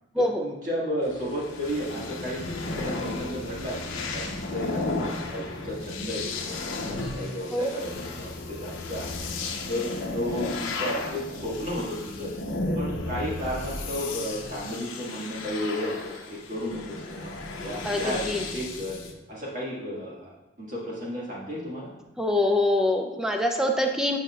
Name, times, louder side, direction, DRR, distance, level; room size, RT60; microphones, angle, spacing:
voice 1, 0.2-5.0 5.3-9.2 9.7-12.3 12.7-19.0 19.3-20.3 20.6-21.9, equal, 40° right, -5 dB, 1.6 m, -33 dB
sound 1, 1.0-19.1, left 2 dB, 75° left, 0.8 m, -34 dB
voice 2, 17.8-18.4 22.2-24.2, left 1 dB, 5° right, 3 dB, 0.4 m, -24 dB
8.2 x 5.5 x 2.3 m, 1.0 s
head